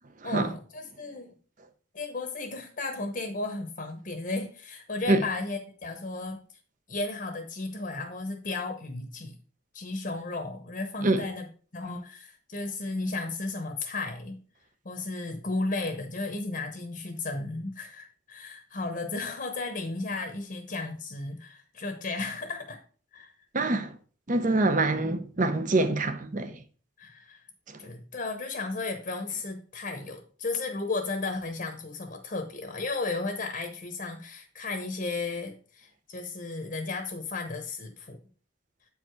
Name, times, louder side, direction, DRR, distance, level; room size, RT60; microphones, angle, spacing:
voice 1, 0.2-1.3 1.9-6.4 6.9-9.4 9.7-11.5 11.7-14.4 14.8-22.8 23.1-23.3 27.0-27.4 27.8-38.2, left 3 dB, 45° left, 0.9 m, -34 dB
voice 2, 23.5-23.9 24.3-26.6, right 2 dB, 40° right, 0.8 m, -25 dB
8.5 x 4.8 x 4.6 m
head